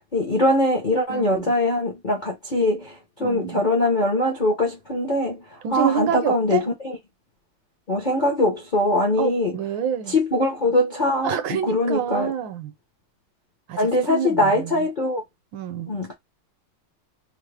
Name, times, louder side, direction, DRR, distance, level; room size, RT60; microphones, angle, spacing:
voice 1, 0.1-5.4 5.7-6.6 7.9-9.5 10.1-11.4 11.7-12.3 13.8-15.2 15.9-16.1, left 1 dB, 55° left, 0.5 m, -22 dB
voice 2, 1.1-1.5 3.2-3.7 5.6-6.7 9.2-10.2 11.2-12.7 13.7-14.9 15.5-15.9, right 8 dB, 75° right, 1.3 m, -27 dB
3.6 x 2.0 x 3.3 m
omnidirectional pair, 2.3 m